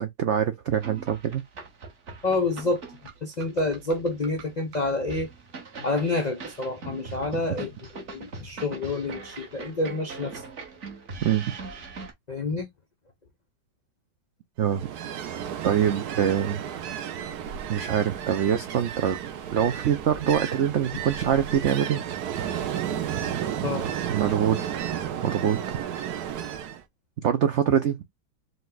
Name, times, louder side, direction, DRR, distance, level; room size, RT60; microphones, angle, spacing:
voice 1, 0.0-1.4 11.2-11.5 14.6-14.9 15.6-16.6 17.7-19.2 19.5-22.0 24.1-24.8 25.2-25.6 27.2-28.0, right 9 dB, 90° right, 0.6 m, -24 dB
sound 1, 0.7-12.1, right 4 dB, 45° right, 1.3 m, -42 dB
voice 2, 2.2-2.8 3.2-5.3 5.8-10.4 12.3-12.7 23.6-23.8, left 2 dB, 70° left, 0.4 m, -28 dB
Ocean, 14.6-26.8, right 9 dB, 65° right, 1.2 m, -32 dB
5.2 x 2.2 x 3.8 m
omnidirectional pair, 1.9 m